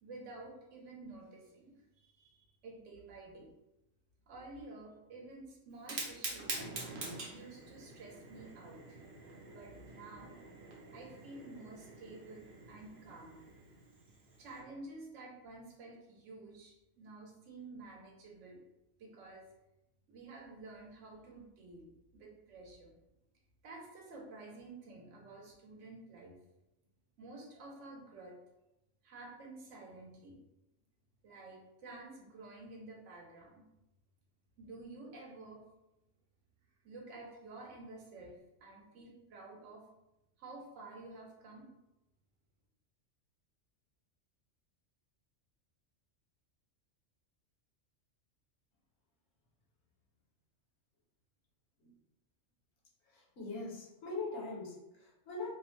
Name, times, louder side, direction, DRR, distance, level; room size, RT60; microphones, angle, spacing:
voice 1, 0.0-3.5 4.3-6.7 7.3-9.0 9.5-10.3 10.9-13.4 14.1-18.6 19.0-19.5 20.1-22.9 23.6-26.4 27.2-28.4 29.0-30.4 31.2-33.6 34.6-35.6 36.8-39.8 40.4-41.7, right 2 dB, 75° right, 0 dB, 1.0 m, -51 dB
Fire, 5.7-14.6, right 2 dB, 55° right, 0.7 m, -46 dB
voice 2, 53.1-55.5, left 3 dB, 70° left, -3 dB, 1.0 m, -42 dB
2.5 x 2.0 x 3.0 m, 0.91 s
omnidirectional pair, 1.3 m